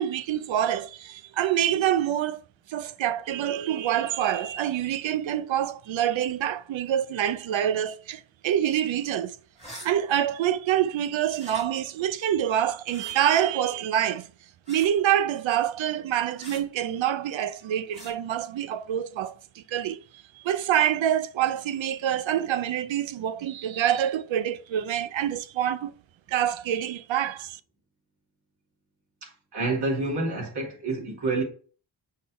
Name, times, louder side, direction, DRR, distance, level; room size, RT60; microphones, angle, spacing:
voice 1, 0.0-2.4 2.7-9.4 9.8-14.3 14.7-25.9 26.3-27.6, right 10 dB, 70° right, 0.6 m, -26 dB
sound 1, 9.6-9.9 11.3-11.6 12.9-13.2 14.7-15.0 16.4-16.6 17.9-18.1, right 1 dB, 15° right, 2.5 m, -43 dB
voice 2, 29.5-31.4, right 3 dB, 55° right, 2.9 m, -28 dB
6.5 x 3.8 x 4.1 m
wide cardioid pair, 135°, 48 cm